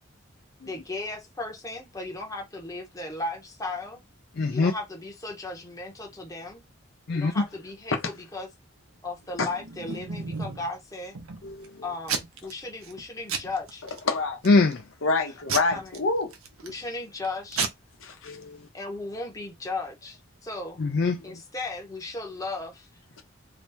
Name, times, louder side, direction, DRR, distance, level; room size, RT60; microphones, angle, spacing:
voice 1, 0.6-4.0 4.5-6.6 7.1-8.5 9.0-11.2 11.8-13.8 15.5-16.0 16.6-17.6 18.7-20.8 21.2-22.9, left 2 dB, 15° left, 0.9 m, -36 dB
voice 2, 4.4-4.7 7.1-7.4 11.4-11.8 14.4-14.8 18.2-18.6 20.8-21.3, left 3 dB, 50° left, 0.4 m, -23 dB
Packing tape duct tape / Tearing, 9.3-10.7 11.2-11.7 12.1-12.5 12.8-13.0 13.3-14.0 14.5-14.8 15.5-16.8 17.2-17.3 17.5-17.7, right 5 dB, 85° right, 0.8 m, -32 dB
voice 3, 14.1-14.4 15.0-16.3 18.0-18.4, left 3 dB, 80° left, 1.0 m, -26 dB
2.9 x 2.7 x 3.3 m
head